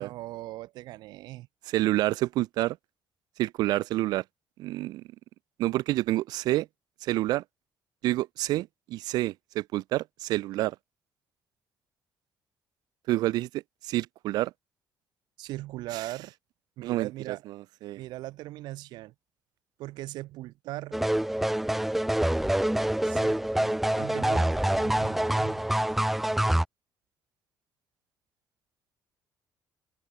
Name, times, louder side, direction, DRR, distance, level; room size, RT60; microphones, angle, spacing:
voice 1, 0.0-1.5 15.4-16.3 16.8-17.4 18.0-19.1 19.8-21.0 23.0-25.6, right 17 dB, 85° right, 1.5 m, -39 dB
voice 2, 1.7-2.8 3.4-4.2 4.6-5.0 5.6-6.7 7.0-7.4 8.0-10.8 13.1-14.5 15.9-16.0 16.8-17.5 17.8-18.0, right 16 dB, 70° right, 0.5 m, -28 dB
sound 1, 20.9-26.6, right 1 dB, 5° right, 0.5 m, -26 dB
open air
cardioid pair, 180°, 7 cm